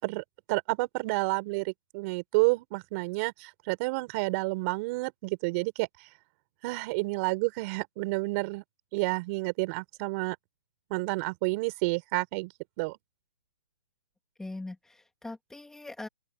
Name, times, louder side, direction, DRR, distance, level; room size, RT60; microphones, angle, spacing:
voice 1, 0.0-5.9 6.6-8.6 8.9-10.4 10.9-12.5 12.8-13.0, right 26 dB, 30° right, 4.8 m, -30 dB
voice 2, 14.4-16.1, left 2 dB, 5° left, 2.7 m, -41 dB
open air
hypercardioid pair, 150°, 14 cm